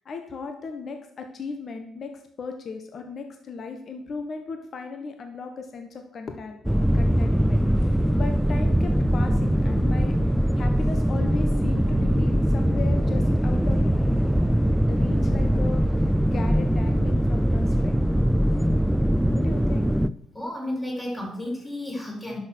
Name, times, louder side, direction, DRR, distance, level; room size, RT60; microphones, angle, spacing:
voice 1, 0.0-6.6 6.9-13.8 14.9-18.1 19.3-19.9, left 4 dB, 50° left, 5 dB, 1.3 m, -37 dB
sound 1, 6.6-20.1, equal, 5° right, 0.4 m, -22 dB
voice 2, 20.3-22.4, left 1 dB, 10° left, -2 dB, 5.0 m, -32 dB
11.0 x 6.6 x 6.3 m, 0.70 s
cardioid pair, 90°, 0 cm